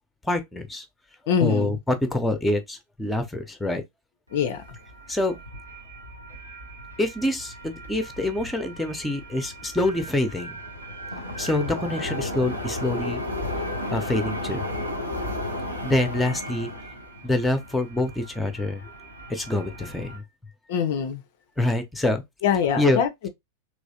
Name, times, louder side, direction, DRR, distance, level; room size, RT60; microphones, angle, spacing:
voice 1, 0.2-0.8 1.4-3.8 5.1-5.4 7.0-10.6 11.4-13.2 13.9-14.7 15.8-16.7 17.2-18.9 19.3-20.2 21.6-22.2 22.8-23.0, left 1 dB, 5° left, 0.7 m, -26 dB
voice 2, 1.3-1.7 4.3-4.6 20.7-21.2 22.4-23.3, left 8 dB, 50° left, 0.4 m, -24 dB
sound 1, 4.3-20.2, left 1 dB, 85° right, 1.0 m, -35 dB
3.2 x 3.0 x 2.6 m
figure-of-eight pair, 90°, 0 cm